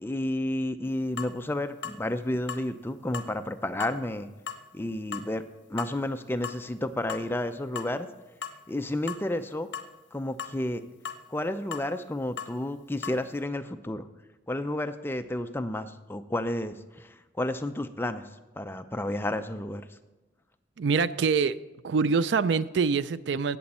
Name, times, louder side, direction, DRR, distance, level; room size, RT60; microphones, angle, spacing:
voice 1, 0.0-4.3 4.7-5.4 5.7-8.1 8.7-9.7 10.1-10.8 11.3-14.1 14.5-18.3 18.6-19.8, left 1 dB, 10° left, 8 dB, 0.5 m, -31 dB
sound 1, 1.2-1.3 1.8-2.0 2.5-2.7 3.1-3.3 3.8-4.0 4.5-4.6 5.1-5.3 5.8-6.0 6.4-6.6 7.1-7.3 7.8-8.1 8.4-8.6 9.1-9.3 9.7-9.9 10.4-10.6 11.0-11.2 11.7-11.9 12.4-12.5 13.0-13.2, left 7 dB, 70° left, 0.9 m, -37 dB
voice 2, 20.8-21.6 21.8-23.6, right 5 dB, 70° right, 16 dB, 0.4 m, -25 dB
17.5 x 7.0 x 4.2 m, 1.1 s
head